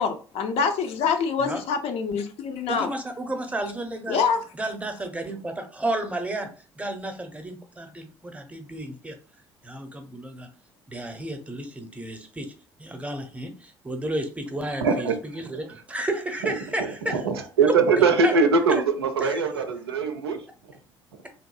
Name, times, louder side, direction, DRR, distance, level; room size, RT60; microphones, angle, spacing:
voice 1, 0.0-2.9 4.1-4.4, left 6 dB, 50° left, 0.5 m, -25 dB
voice 2, 2.7-4.2 4.5-9.2 9.6-10.5 10.9-12.5 12.8-17.2 17.7-18.3 18.7-18.8 19.2-19.5, right 1 dB, 10° right, 0.7 m, -32 dB
voice 3, 14.8-15.1 17.1-20.4, right 4 dB, 80° right, 0.4 m, -22 dB
3.4 x 2.6 x 2.3 m
figure-of-eight pair, 55°, 13 cm